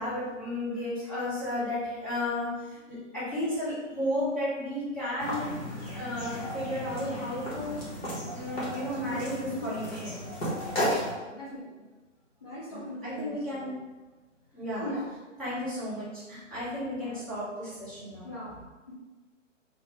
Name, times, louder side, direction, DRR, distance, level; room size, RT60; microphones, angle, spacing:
voice 1, 0.0-5.5 5.9-10.2 10.9-11.2 12.7-13.7 14.5-14.9 15.4-18.3, left 1 dB, 5° left, -14 dB, 0.9 m, -34 dB
sound 1, 5.2-11.1, equal, 50° left, 1.4 m, -34 dB
voice 2, 8.9-9.8 11.1-11.9 12.4-13.7 14.8-15.0 16.9-17.2 18.2-18.6 18.9-19.0, equal, 20° left, -10 dB, 0.5 m, -39 dB
3.2 x 2.0 x 3.2 m, 1.2 s
figure-of-eight pair, 130°, 38 cm